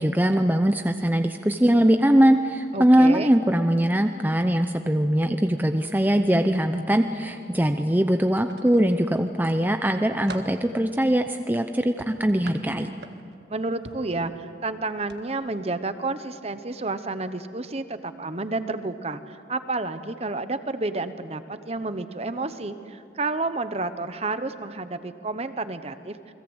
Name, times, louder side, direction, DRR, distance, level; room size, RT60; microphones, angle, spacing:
voice 1, 0.0-12.9, equal, 10° right, 6 dB, 0.7 m, -21 dB
voice 2, 2.7-3.3 13.5-26.2, right 3 dB, 35° right, 11 dB, 1.0 m, -30 dB
sound 1, 8.4-9.2 9.7-10.6 12.0-13.4 13.8-14.1 15.0-15.2 15.6-15.7, right 2 dB, 65° right, 1.6 m, -43 dB
29.0 x 21.5 x 8.1 m, 2.4 s
head